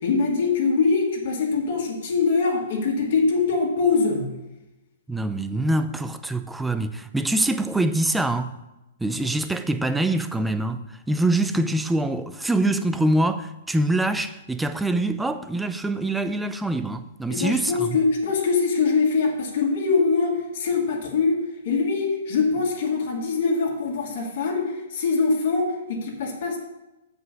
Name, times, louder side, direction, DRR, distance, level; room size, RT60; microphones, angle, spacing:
voice 1, 0.0-4.3 17.3-26.6, left 4 dB, 60° left, 2.2 m, -23 dB
voice 2, 5.1-8.6 9.0-18.0, right 2 dB, 5° right, 0.5 m, -24 dB
7.6 x 5.3 x 6.6 m
hypercardioid pair, 120°, 0 cm